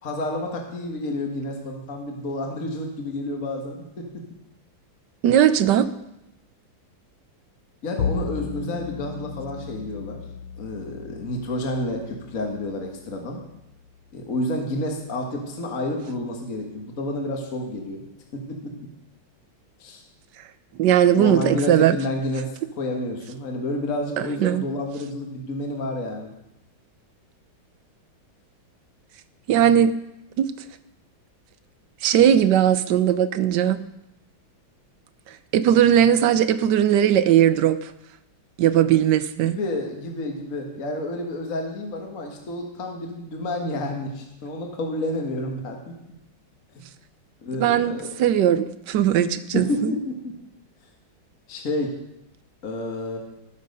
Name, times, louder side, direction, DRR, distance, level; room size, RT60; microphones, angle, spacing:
voice 1, 0.0-4.3 7.8-10.2 10.6-13.4 14.1-18.0 18.3-18.8 19.8-20.0 21.2-26.3 39.5-46.0 46.7-46.9 47.4-48.1 49.5-50.3 51.5-51.9 52.6-53.2, left 1 dB, 45° left, 2 dB, 1.8 m, -30 dB
voice 2, 5.2-5.9 20.8-22.0 24.4-24.7 29.5-29.9 30.4-30.5 32.0-33.8 35.5-37.9 38.6-39.6 47.6-49.9, right 10 dB, 70° right, 13 dB, 1.2 m, -18 dB
Bowed string instrument, 8.0-14.4, left 6 dB, 80° left, 1.8 m, -35 dB
19.0 x 6.7 x 5.3 m, 0.88 s
omnidirectional pair, 2.2 m